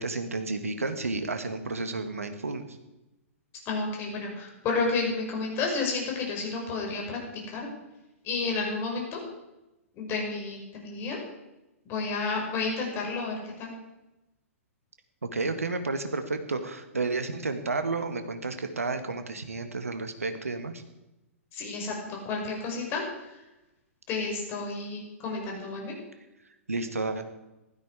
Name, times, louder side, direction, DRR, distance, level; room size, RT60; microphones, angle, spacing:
voice 1, 0.0-2.8 15.2-20.8 26.7-27.2, right 3 dB, 80° right, 8 dB, 1.8 m, -31 dB
voice 2, 3.7-7.7 8.2-9.2 10.0-11.2 11.8-13.7 21.5-23.0 24.1-25.9, left 4 dB, 30° left, 0 dB, 5.8 m, -31 dB
16.0 x 13.0 x 4.9 m, 0.98 s
figure-of-eight pair, 110°, 8 cm